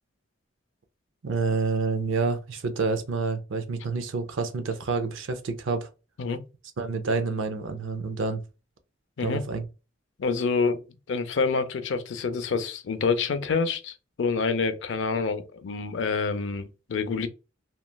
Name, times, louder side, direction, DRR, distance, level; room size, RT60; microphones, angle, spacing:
voice 1, 1.2-5.9 6.8-8.4 9.2-9.7, right 4 dB, 85° right, 0.5 m, -28 dB
voice 2, 10.2-10.8 11.1-17.3, left 4 dB, 70° left, 0.4 m, -27 dB
3.0 x 2.3 x 2.2 m
head